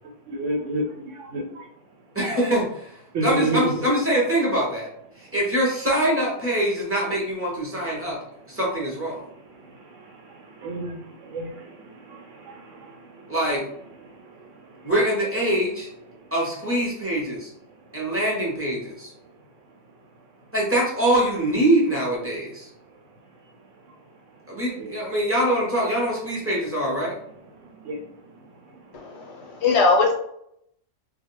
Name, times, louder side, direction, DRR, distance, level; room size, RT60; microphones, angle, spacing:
voice 1, 0.3-1.4 3.1-3.6 10.6-11.0 11.3-11.5 24.8-24.9 27.9-28.0, right 2 dB, 70° right, 2 dB, 0.9 m, -27 dB
voice 2, 2.1-4.9 5.2-8.2 8.5-9.2 13.3-13.6 14.8-15.9 16.3-17.5 17.9-19.1 20.5-22.7 24.5-27.2, right 1 dB, 15° right, -4 dB, 0.6 m, -24 dB
voice 3, 28.9-30.1, left 3 dB, 65° left, 1 dB, 0.8 m, -21 dB
2.5 x 2.2 x 3.0 m, 0.72 s
omnidirectional pair, 1.4 m